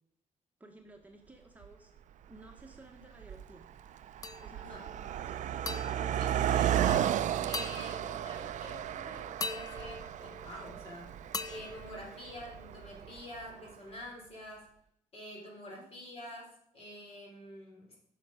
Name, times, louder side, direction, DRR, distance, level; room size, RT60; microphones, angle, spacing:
voice 1, 0.6-1.9 2.3-3.6 4.4-5.4 12.1-12.2 15.7-15.9, right 2 dB, 10° right, 1 dB, 1.2 m, -55 dB
Car passing by, 1.6-1.7 2.5-2.8 3.0-13.4, right 11 dB, 65° right, 0.5 m, -34 dB
sound 1, 4.2-4.8 5.7-7.1 7.5-8.6 9.4-10.9 11.3-12.8, left 4 dB, 25° left, 0.5 m, -42 dB
voice 2, 6.1-7.2 7.5-11.2 11.5-14.7 15.1-18.0, left 1 dB, 50° left, -1 dB, 3.8 m, -47 dB
15.5 x 6.6 x 5.1 m, 0.74 s
cardioid pair, 145°, 13 cm